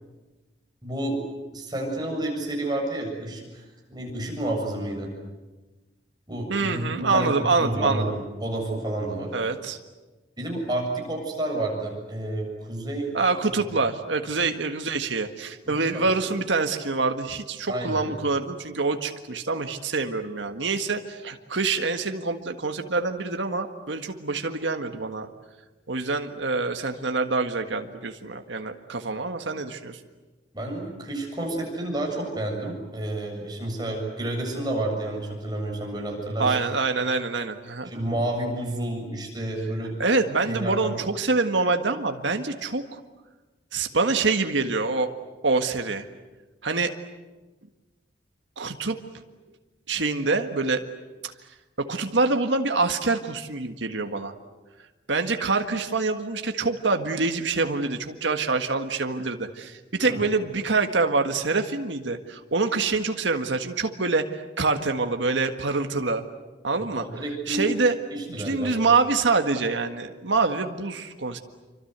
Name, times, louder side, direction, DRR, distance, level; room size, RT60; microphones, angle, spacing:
voice 1, 0.8-1.2 1.5-5.1 6.3-9.3 10.4-13.1 14.4-14.5 15.7-16.1 17.6-18.1 30.5-36.6 37.8-40.0 40.4-41.0 60.1-60.3 66.7-67.7 68.1-68.8, right 1 dB, 25° right, 0 dB, 7.4 m, -30 dB
voice 2, 6.5-8.1 9.3-9.8 13.1-25.3 25.9-30.0 36.4-37.9 40.0-43.0 43.7-45.1 45.4-46.1 46.6-46.9 48.6-49.0 49.9-50.8 51.9-54.3 55.1-66.2 66.6-67.0 67.5-67.9 68.3-71.4, right 3 dB, 85° right, 6 dB, 1.7 m, -25 dB
27.5 x 25.0 x 8.1 m, 1.2 s
head